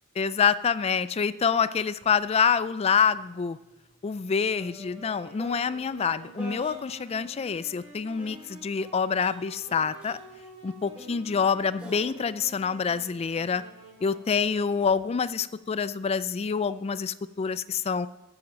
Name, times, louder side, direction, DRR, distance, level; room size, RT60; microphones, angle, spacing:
voice 1, 0.2-3.6 4.0-10.2 10.6-13.6 14.0-18.1, left 6 dB, 30° left, 15 dB, 0.3 m, -26 dB
sound 1, 2.0-2.2 2.5-7.3 8.2-13.7 14.6-15.0, left 1 dB, 5° right, 4.4 m, -48 dB
Wind instrument woodwind instrument, 4.5-15.4, right 1 dB, 25° right, 5.3 m, -49 dB
12.5 x 7.7 x 7.3 m, 0.98 s
head